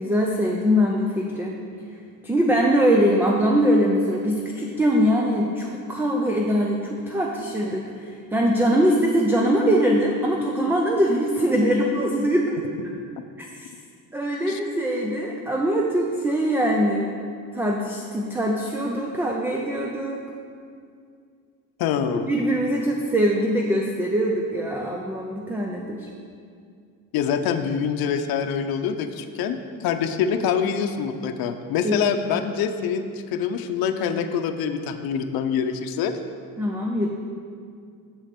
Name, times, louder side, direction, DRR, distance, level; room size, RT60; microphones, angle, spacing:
voice 1, 0.0-1.6 2.2-12.6 13.5-13.7 14.1-17.1 17.5-20.2 22.1-26.1 31.8-32.0 36.6-37.1, equal, 5° right, -1 dB, 0.4 m, -22 dB
voice 2, 21.8-22.3 27.1-36.1, left 7 dB, 85° left, 7 dB, 0.7 m, -25 dB
7.5 x 7.4 x 5.1 m, 2.2 s
cardioid pair, 175°, 35 cm